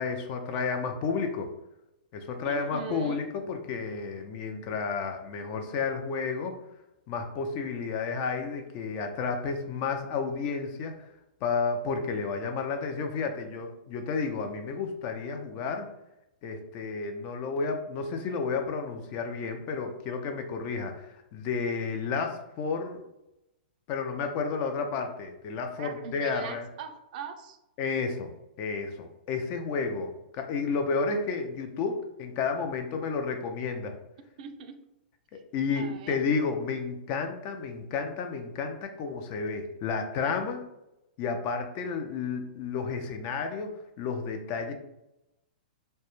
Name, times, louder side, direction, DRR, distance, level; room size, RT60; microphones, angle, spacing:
voice 1, 0.0-1.5 2.1-6.5 7.1-11.1 11.4-15.9 16.4-23.0 23.9-26.6 27.8-33.9 35.5-40.6 41.2-44.7, left 5 dB, 35° left, 5 dB, 0.3 m, -31 dB
voice 2, 2.4-3.2 25.8-27.6 34.4-34.8 35.7-36.2, right 7 dB, 50° right, 6 dB, 0.3 m, -40 dB
2.1 x 2.0 x 2.9 m, 0.88 s
hypercardioid pair, 135°, 5 cm